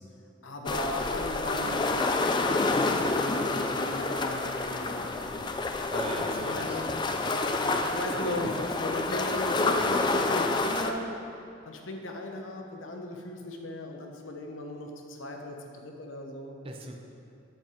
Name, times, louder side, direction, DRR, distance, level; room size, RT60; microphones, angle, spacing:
voice 1, 0.4-5.5 6.4-6.9 7.3-11.1 11.7-16.6, left 1 dB, 80° left, 2 dB, 0.9 m, -37 dB
sound 1, 0.7-10.9, left 3 dB, 25° left, 0.3 m, -28 dB
voice 2, 5.9-7.8 9.1-9.5 9.8-10.0 16.6-17.0, right 2 dB, 30° right, 2 dB, 0.6 m, -42 dB
7.9 x 6.7 x 4.4 m, 2.6 s
head